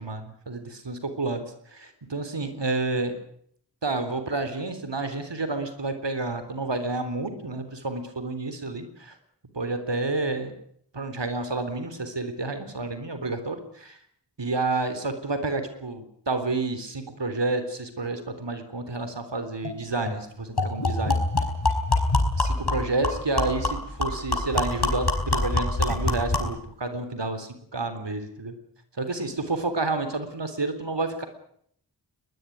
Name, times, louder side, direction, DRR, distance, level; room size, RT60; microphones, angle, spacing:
voice 1, 0.0-1.5 1.7-3.1 3.8-9.2 9.5-10.5 10.9-14.0 14.4-21.3 22.3-28.6 29.0-31.3, right 3 dB, 80° right, 9 dB, 3.7 m, -30 dB
sound 1, 19.6-19.7 20.1-20.2 20.6-26.6, left 2 dB, 65° left, 5.0 m, -25 dB
22.0 x 20.0 x 9.4 m, 0.68 s
wide cardioid pair, 55°, 42 cm